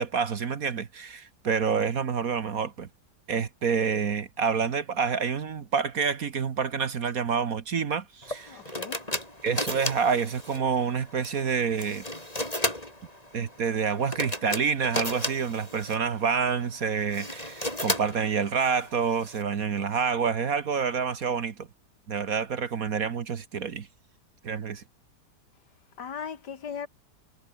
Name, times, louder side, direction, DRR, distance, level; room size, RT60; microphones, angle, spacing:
voice 1, 0.0-2.9 3.3-8.6 9.4-12.0 13.3-21.7 22.1-23.9 24.4-24.8, right 6 dB, 60° right, 1.7 m, -28 dB
sound 1, 8.2-19.4, left 1 dB, 20° left, 7.7 m, -35 dB
voice 2, 8.5-9.0 26.0-26.9, left 7 dB, 85° left, 2.4 m, -37 dB
omnidirectional pair, 1.8 m